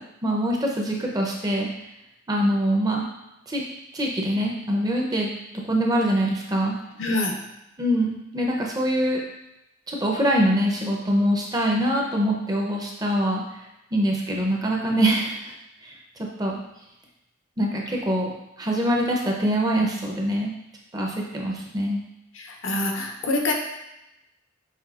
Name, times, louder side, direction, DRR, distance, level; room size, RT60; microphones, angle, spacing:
voice 1, 0.2-1.7 2.3-3.1 3.5-3.7 3.9-5.3 5.6-6.7 7.8-9.2 9.9-13.4 13.9-15.4 15.8-15.9 16.2-16.6 17.6-18.3 18.6-20.5 20.9-22.0, equal, 20° right, -1 dB, 0.6 m, -24 dB
voice 2, 7.0-7.4 22.4-23.5, left 2 dB, 70° left, 2 dB, 0.7 m, -25 dB
5.8 x 3.1 x 2.4 m, 0.90 s
head